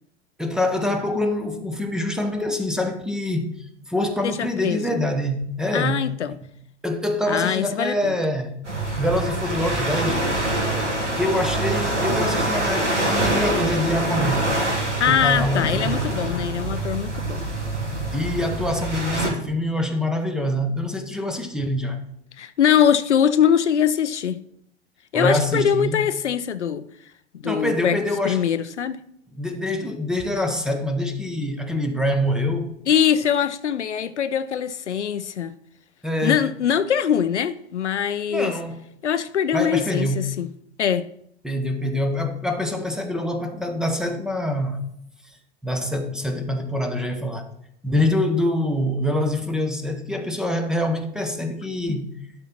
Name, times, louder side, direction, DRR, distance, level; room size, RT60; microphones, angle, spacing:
voice 1, 0.4-6.0 6.4-6.5 6.8-8.5 9.0-10.3 11.1-14.4 15.1-16.2 18.1-22.0 25.1-26.0 27.4-28.5 29.4-32.7 36.0-36.4 38.3-38.7 39.5-40.2 41.4-44.8 45.6-47.5 47.8-52.1, left 1 dB, ahead, 0.9 m, -25 dB
voice 2, 4.2-5.0 5.7-6.3 7.3-8.1 8.9-9.0 15.0-17.4 22.4-24.4 25.1-26.9 27.3-28.0 28.2-29.0 32.9-35.5 36.2-38.5 39.0-40.5 40.8-41.1, left 8 dB, 80° left, 0.6 m, -22 dB
sound 1, 8.6-19.3, right 2 dB, 90° right, 2.1 m, -25 dB
11.5 x 4.5 x 5.9 m
figure-of-eight pair, 95°, 34 cm